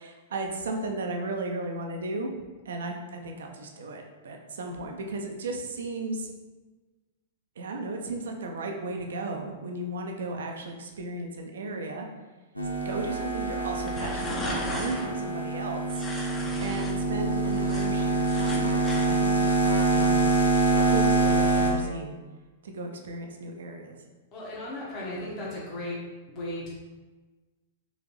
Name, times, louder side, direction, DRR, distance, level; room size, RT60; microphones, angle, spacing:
voice 1, 0.0-2.3 2.7-6.3 7.6-12.1 12.8-16.0 16.6-20.3 20.8-22.2 22.6-23.9, right 2 dB, 65° right, 3 dB, 0.5 m, -35 dB
sound 1, 12.6-21.7, right 3 dB, 90° left, 0.5 m, -25 dB
sound 2, 13.7-15.1 15.9-16.9 17.3-19.1, left 1 dB, 15° left, 0.7 m, -36 dB
voice 2, 24.3-26.0 26.3-26.7, left 1 dB, 35° left, -6 dB, 1.1 m, -36 dB
3.9 x 2.8 x 3.0 m, 1.3 s
figure-of-eight pair, 100°, 0 cm